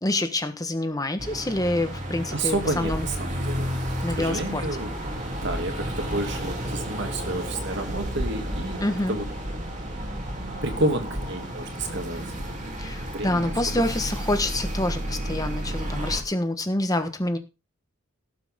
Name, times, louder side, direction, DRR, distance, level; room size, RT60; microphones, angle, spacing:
voice 1, 0.0-3.1 4.0-4.6 8.8-9.2 12.8-17.4, left 1 dB, 15° left, 8 dB, 1.3 m, -27 dB
sound 1, 1.2-16.2, equal, 35° right, 3.2 m, -32 dB
voice 2, 2.3-3.8 4.1-5.0 5.4-9.3 10.6-12.2 13.1-13.8, right 2 dB, 60° right, 6 dB, 2.6 m, -30 dB
18.0 x 7.8 x 3.7 m, 0.29 s
head